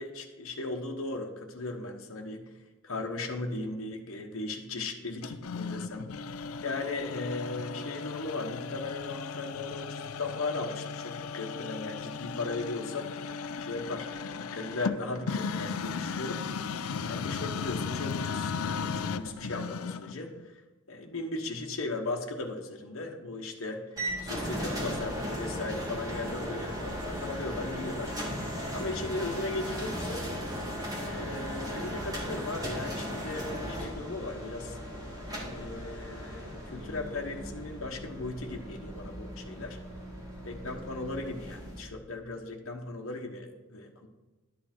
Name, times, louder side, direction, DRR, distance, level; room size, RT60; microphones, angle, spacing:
voice 1, 0.0-2.5 2.8-6.1 6.6-13.1 13.6-16.5 17.0-20.4 20.9-28.1 28.7-30.3 31.0-34.8 35.4-39.8 40.4-44.1, left 2 dB, 70° left, 1 dB, 1.1 m, -37 dB
sound 1, 5.2-20.2, left 5 dB, 90° left, 0.5 m, -36 dB
sound 2, 24.0-41.8, equal, 15° right, 2.5 m, -37 dB
12.0 x 8.4 x 4.3 m, 1.2 s
head